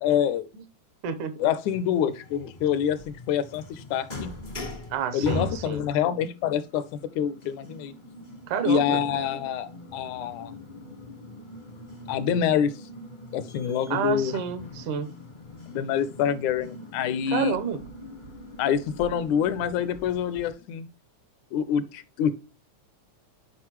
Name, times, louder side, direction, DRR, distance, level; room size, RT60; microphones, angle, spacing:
voice 1, 0.0-0.5 1.4-4.3 5.1-7.9 8.6-10.5 12.1-12.7 13.3-14.4 15.7-17.6 18.6-20.9 21.5-22.4, left 8 dB, 80° left, 15 dB, 2.1 m, -26 dB
voice 2, 1.0-1.4 4.9-5.8 8.5-9.0 13.9-15.1 17.3-17.8, right 7 dB, 80° right, 11 dB, 2.5 m, -29 dB
sound 1, 1.7-20.5, left 2 dB, 40° left, 0.6 m, -42 dB
9.6 x 5.1 x 3.0 m, 0.31 s
omnidirectional pair, 3.5 m